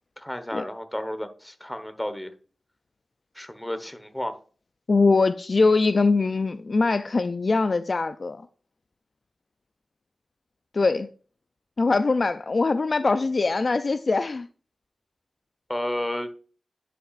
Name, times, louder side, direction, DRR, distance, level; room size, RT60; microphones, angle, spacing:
voice 1, 0.2-2.3 3.3-4.3 15.7-16.3, left 1 dB, 10° left, 1.1 m, -32 dB
voice 2, 4.9-8.4 10.7-11.1 11.8-14.5, left 3 dB, 55° left, 0.3 m, -22 dB
11.0 x 5.9 x 2.5 m
cardioid pair, 55°, 0 cm